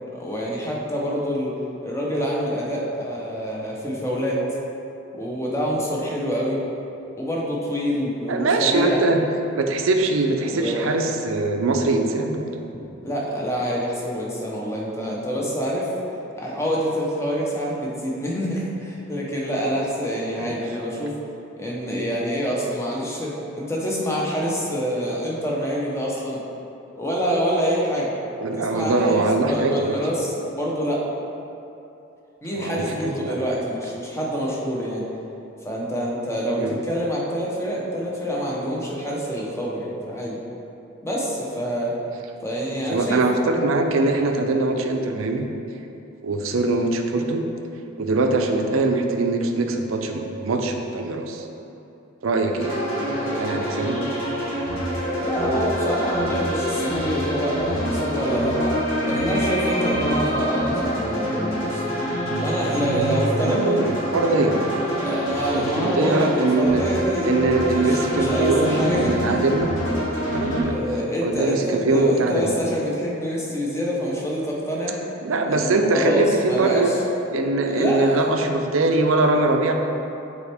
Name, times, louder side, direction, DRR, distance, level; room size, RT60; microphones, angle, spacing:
voice 1, 0.1-1.5 1.8-4.4 5.1-6.6 7.2-9.0 10.4-10.9 12.7-15.9 16.3-21.1 21.6-26.4 26.9-28.1 28.6-31.0 32.4-35.1 35.6-40.4 41.0-42.0 42.4-43.2 52.8-53.5 55.2-61.8 62.4-63.8 64.9-67.3 67.7-69.5 70.6-75.0 75.4-77.0 77.6-78.4, equal, 15° left, -4 dB, 0.8 m, -26 dB
voice 2, 8.3-9.2 9.5-12.4 20.4-20.5 28.4-29.9 32.5-33.6 36.6-36.7 42.9-45.5 46.2-47.4 48.0-51.4 52.2-52.7 53.4-54.5 63.4-64.6 65.7-66.8 67.2-69.7 70.3-70.8 71.2-72.5 75.2-76.9 77.3-79.7, right 2 dB, 90° right, 4 dB, 0.5 m, -22 dB
sound 1, 52.6-70.6, equal, 85° left, 1.4 m, -26 dB
7.1 x 4.3 x 3.5 m, 2.8 s
head